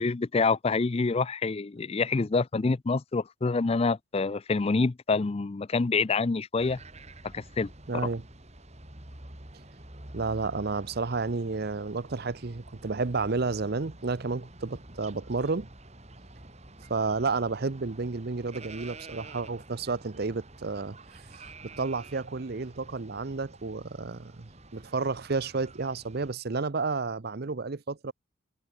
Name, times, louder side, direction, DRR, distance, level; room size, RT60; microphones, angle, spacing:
voice 1, 0.0-6.8 7.3-7.7, left 4 dB, 30° left, 0.4 m, -27 dB
sound 1, 6.6-26.3, right 2 dB, 35° right, 3.6 m, -49 dB
voice 2, 7.9-8.2 10.1-15.7 16.9-21.2 21.6-28.1, right 4 dB, 50° right, 0.7 m, -31 dB
head